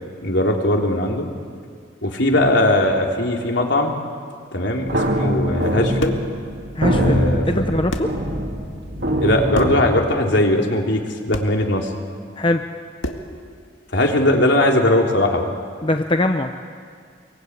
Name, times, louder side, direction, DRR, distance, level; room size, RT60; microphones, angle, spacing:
voice 1, 0.2-1.3 2.0-4.0 4.5-6.2 6.9-7.4 9.2-11.0 11.3-11.9 13.9-15.5, left 1 dB, 70° left, 1 dB, 3.5 m, -19 dB
sound 1, 4.9-9.9, equal, 60° right, 3.1 m, -23 dB
sound 2, 6.0-6.3 7.5-7.6 7.9-8.2 9.5-9.9 11.3-11.6 13.0-13.4, left 1 dB, 90° left, 1.9 m, -30 dB
voice 2, 6.7-7.2 7.5-8.1 12.4-12.7 15.8-16.5, left 1 dB, 25° left, 5 dB, 0.8 m, -21 dB
24.0 x 23.5 x 9.6 m, 2.1 s
head